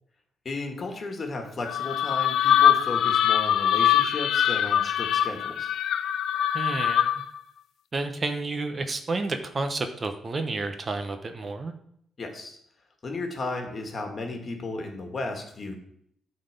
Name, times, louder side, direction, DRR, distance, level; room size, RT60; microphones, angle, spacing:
voice 1, 0.5-5.7 12.2-12.6 13.0-15.8, left 3 dB, 40° left, 3 dB, 1.9 m, -34 dB
sound 1, 1.7-7.4, left 10 dB, 70° left, 0.5 m, -23 dB
voice 2, 6.5-7.1 7.9-11.7, right 3 dB, 35° right, 7 dB, 0.9 m, -30 dB
9.1 x 4.1 x 6.7 m, 0.71 s
cardioid pair, 90°, 0 cm